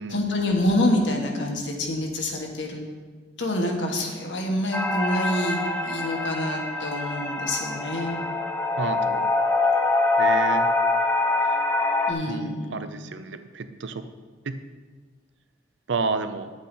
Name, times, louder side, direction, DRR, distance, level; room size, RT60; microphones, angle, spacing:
voice 1, 0.1-2.8 3.4-8.2 12.1-12.8, left 1 dB, 85° left, 1 dB, 1.5 m, -26 dB
sound 1, 4.7-12.1, left 3 dB, 10° left, 0.6 m, -24 dB
voice 2, 8.8-9.3 10.2-10.7 11.4-11.6 12.3-14.1 14.4-14.6 15.9-16.5, right 4 dB, 90° right, 10 dB, 0.6 m, -30 dB
10.0 x 8.1 x 4.0 m, 1.5 s
head